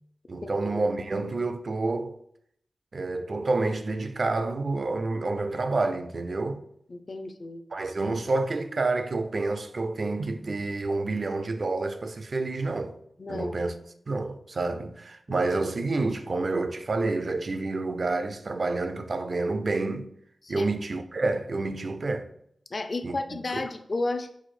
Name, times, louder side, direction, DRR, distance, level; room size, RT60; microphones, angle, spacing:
voice 1, 0.3-2.2 2.9-6.6 7.7-13.0 13.3-13.7 14.1-20.1 20.5-22.3 23.0-23.7, right 3 dB, 60° right, 0.4 m, -29 dB
voice 2, 6.9-7.6 13.2-13.5 15.3-15.4 20.4-20.7 22.7-24.3, left 2 dB, 55° left, 0.4 m, -32 dB
4.7 x 2.0 x 4.1 m
cardioid pair, 45°, 0 cm